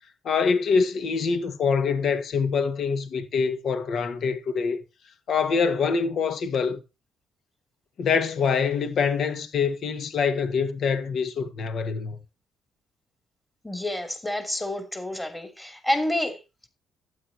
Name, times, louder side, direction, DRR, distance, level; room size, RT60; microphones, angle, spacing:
voice 1, 0.2-4.8 5.3-6.8 8.0-12.2, left 5 dB, 65° left, 1.7 m, -25 dB
voice 2, 13.6-16.4, left 1 dB, 15° left, 2.9 m, -28 dB
12.5 x 8.8 x 2.9 m
cardioid pair, 90°, 0 cm